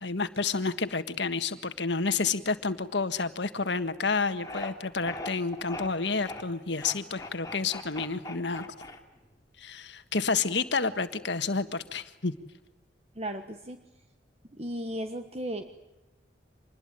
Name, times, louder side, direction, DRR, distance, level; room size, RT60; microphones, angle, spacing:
voice 1, 0.0-8.7 9.6-12.3, left 4 dB, 70° left, 10 dB, 1.7 m, -30 dB
sound 1, 4.4-4.7 5.0-5.9 6.2-6.4 6.8-9.3, left 2 dB, 20° left, 3.0 m, -39 dB
voice 2, 13.1-13.8 14.5-15.6, right 1 dB, 35° right, 7 dB, 1.3 m, -35 dB
26.5 x 21.0 x 9.0 m, 1.0 s
head